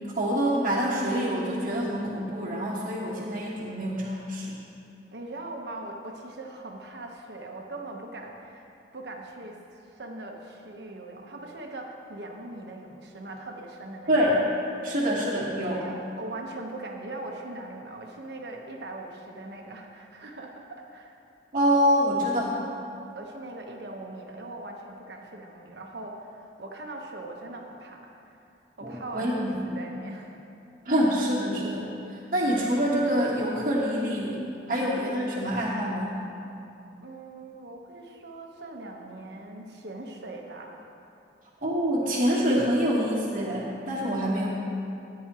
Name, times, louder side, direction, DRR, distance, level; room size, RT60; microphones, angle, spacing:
voice 1, 0.1-4.5 14.1-14.4 14.8-15.8 21.5-22.6 28.8-29.6 30.8-31.9 32.3-34.4 34.7-36.1 41.6-44.5, equal, 50° right, -8 dB, 1.3 m, -26 dB
voice 2, 5.1-8.7 8.9-9.6 9.8-14.2 15.7-21.2 23.1-28.4 28.8-30.4 34.7-34.9 37.0-40.9, right 2 dB, 70° right, 1 dB, 1.2 m, -41 dB
14.5 x 9.7 x 3.0 m, 2.7 s
head